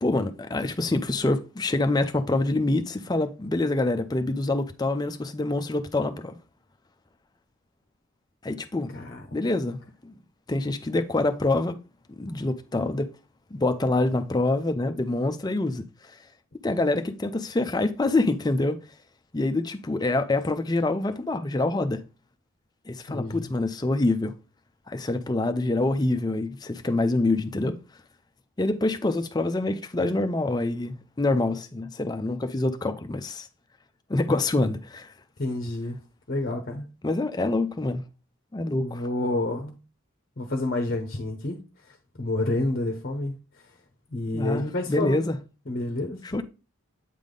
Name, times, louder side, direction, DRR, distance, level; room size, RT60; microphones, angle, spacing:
voice 1, 0.0-6.4 8.4-8.9 9.3-9.8 10.0-10.2 10.5-11.8 12.1-13.1 13.5-15.8 16.6-18.8 19.3-22.0 22.9-24.3 24.9-27.8 28.6-33.5 34.1-35.1 37.0-38.0 38.5-39.0 44.3-45.4 46.3-46.4, left 2 dB, 20° left, 0.4 m, -26 dB
voice 2, 23.1-23.5 35.4-36.0 36.3-36.8 38.8-39.7 40.4-41.6 41.9-43.3 44.1-45.2 45.7-46.2, left 2 dB, 45° left, 0.7 m, -29 dB
8.3 x 3.5 x 3.8 m
head